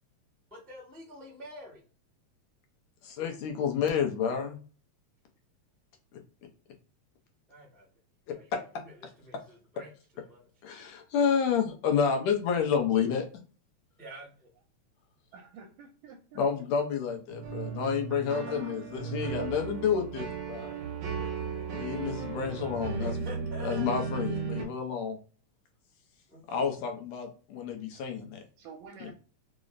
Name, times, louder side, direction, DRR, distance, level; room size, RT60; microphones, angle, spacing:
voice 1, 0.5-1.8 7.5-7.8 8.3-8.5 9.0-10.4 14.0-14.3 18.3-19.5 20.6-21.7 23.0-23.9 26.3-26.4, equal, ahead, -4 dB, 0.3 m, -47 dB
voice 2, 3.0-4.6 8.3-8.6 10.6-13.3 16.4-20.7 21.7-23.1 23.6-25.2 26.5-28.4, left 7 dB, 80° left, 3 dB, 1.8 m, -29 dB
voice 3, 15.3-16.4 28.6-29.1, right 5 dB, 85° right, 1 dB, 2.0 m, -49 dB
sound 1, 17.3-24.6, right 6 dB, 65° right, 1.9 m, -35 dB
5.0 x 2.0 x 2.3 m, 0.38 s
omnidirectional pair, 3.3 m